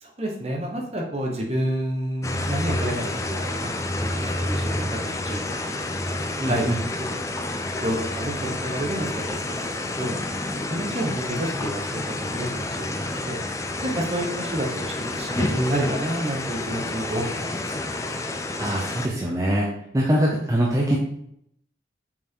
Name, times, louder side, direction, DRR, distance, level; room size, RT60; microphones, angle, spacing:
voice 1, 0.0-5.5 6.3-6.8 7.1-7.4 7.8-9.3 9.7-17.2 17.6-17.7, right 1 dB, 35° right, 0 dB, 1.1 m, -30 dB
sound 1, 2.2-19.1, left 2 dB, 15° left, 0.4 m, -29 dB
voice 2, 6.4-6.8 18.6-19.7 19.9-21.0, right 1 dB, 15° right, -3 dB, 0.7 m, -23 dB
5.8 x 4.7 x 4.5 m, 0.73 s
head